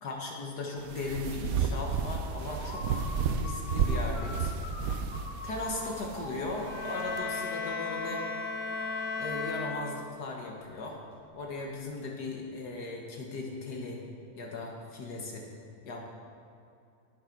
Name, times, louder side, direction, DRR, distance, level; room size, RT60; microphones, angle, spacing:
voice 1, 0.0-3.0 3.4-4.5 5.4-8.2 9.2-11.0 11.3-14.0 14.4-15.5 15.8-16.0, left 2 dB, 70° left, 0 dB, 1.9 m, -37 dB
sound 1, 0.8-7.2, right 5 dB, 65° right, 1.0 m, -32 dB
sound 2, 2.5-9.7, left 3 dB, 85° left, 1.6 m, -43 dB
sound 3, 6.5-10.4, left 5 dB, 45° left, 3.5 m, -36 dB
19.0 x 6.6 x 4.6 m, 2.5 s
omnidirectional pair, 1.8 m